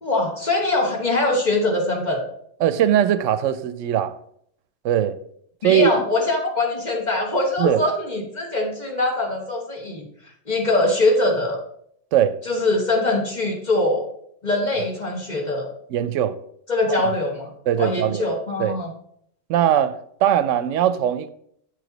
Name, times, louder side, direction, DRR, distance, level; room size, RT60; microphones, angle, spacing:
voice 1, 0.0-2.2 5.6-10.1 10.5-11.6 12.5-14.1 14.4-15.7 16.7-17.5 17.8-18.9, left 2 dB, 40° left, 1.2 m, -22 dB
voice 2, 2.6-4.2 4.8-5.2 5.6-5.9 7.6-7.8 12.1-12.4 14.8-14.9 15.9-16.4 16.9-17.0 17.7-18.3 18.6-18.8 19.5-21.3, right 10 dB, 85° right, 0.9 m, -20 dB
8.2 x 4.9 x 3.9 m
omnidirectional pair, 1.2 m